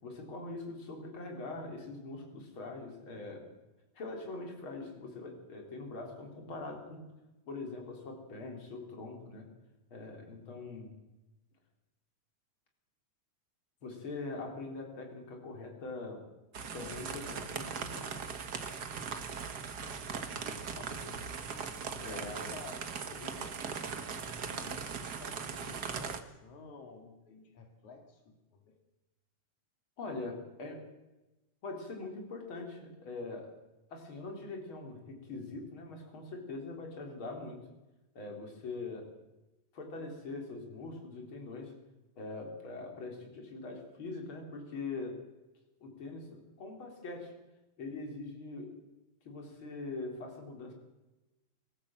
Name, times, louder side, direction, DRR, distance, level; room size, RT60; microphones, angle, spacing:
voice 1, 0.0-3.4 4.0-7.0 7.5-9.5 9.9-10.9 13.8-16.2 16.7-18.0 22.0-22.4 30.0-30.8 31.6-33.5 33.9-37.6 38.1-39.1 39.7-41.7 42.2-45.2 45.8-47.3 47.8-48.7 49.3-50.7, left 3 dB, 40° left, 2 dB, 4.3 m, -42 dB
sound 1, 16.5-26.2, right 6 dB, 45° right, 1.4 m, -39 dB
voice 2, 19.8-21.4 21.9-22.7 23.1-28.8, left 4 dB, 75° left, 3 dB, 3.6 m, -52 dB
25.5 x 14.0 x 7.5 m, 1.1 s
omnidirectional pair, 3.4 m